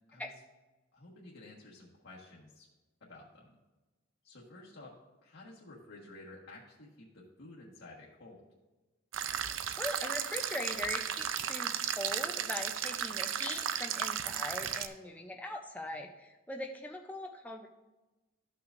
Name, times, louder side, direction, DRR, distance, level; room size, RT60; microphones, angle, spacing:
voice 1, 0.9-2.7 3.0-3.5 4.2-4.9 5.2-8.4, left 2 dB, 70° left, -7 dB, 1.5 m, -52 dB
sound 1, 9.1-14.9, right 9 dB, 75° right, 0.5 m, -35 dB
voice 2, 9.8-17.7, left 1 dB, 10° left, 2 dB, 0.5 m, -41 dB
13.0 x 5.8 x 2.6 m, 1.1 s
head